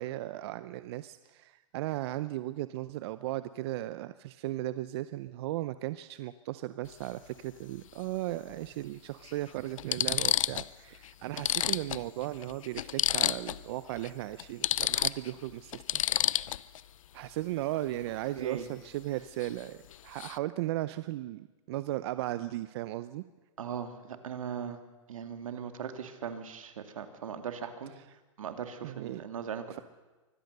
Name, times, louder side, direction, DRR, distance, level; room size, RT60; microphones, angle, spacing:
voice 1, 0.0-16.0 17.1-23.2 28.8-29.2, right 15 dB, 50° right, 14 dB, 0.7 m, -36 dB
sound 1, 6.8-7.0 8.5-8.6 9.3-9.4 9.8-10.7 11.0-11.1 11.4-13.7 14.0-14.1 14.4-16.8 19.4-19.6 19.9-20.4, left 11 dB, 80° left, 0.6 m, -30 dB
voice 2, 18.4-18.7 23.6-24.8 25.1-27.9 28.4-29.7, right 7 dB, 85° right, 7 dB, 2.4 m, -39 dB
24.0 x 16.0 x 6.7 m, 1.2 s
hypercardioid pair, 140°, 17 cm